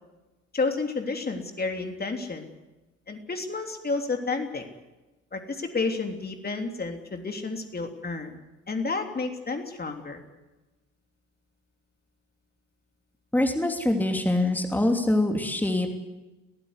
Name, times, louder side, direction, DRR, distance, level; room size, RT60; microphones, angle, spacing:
voice 1, 0.5-2.5 3.1-4.6 5.3-8.4 8.7-10.2, left 3 dB, 25° left, 4 dB, 3.3 m, -30 dB
voice 2, 13.3-15.9, left 1 dB, 5° left, 3 dB, 2.9 m, -24 dB
23.5 x 18.5 x 8.2 m, 1.1 s
figure-of-eight pair, 55°, 37 cm